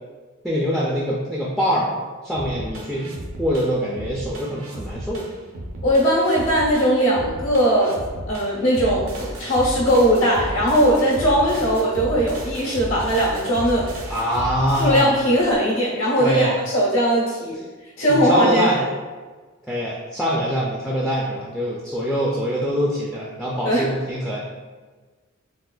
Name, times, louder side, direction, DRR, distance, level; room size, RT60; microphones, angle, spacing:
voice 1, 0.4-1.9 2.2-3.1 3.4-5.2 14.1-15.1 16.2-16.6 18.1-18.8 19.7-24.5, equal, ahead, -6 dB, 0.3 m, -24 dB
sound 1, 2.3-15.5, right 1 dB, 85° right, 0.6 m, -34 dB
voice 2, 5.8-8.0 8.3-13.9 14.8-17.6 18.0-18.9 23.6-23.9, equal, 70° left, -5 dB, 1.2 m, -19 dB
3.8 x 2.4 x 2.3 m, 1.4 s
head